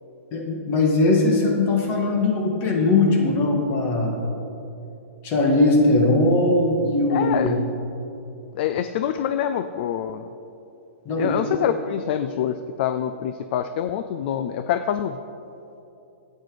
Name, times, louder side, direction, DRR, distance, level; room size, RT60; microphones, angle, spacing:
voice 1, 0.3-4.2 5.2-7.6 11.0-11.3, left 2 dB, 30° left, 1 dB, 1.8 m, -20 dB
voice 2, 7.1-7.6 8.5-10.3 11.2-15.2, left 9 dB, 45° left, 11 dB, 0.4 m, -26 dB
11.5 x 8.5 x 5.0 m, 2.9 s
hypercardioid pair, 150°, 8 cm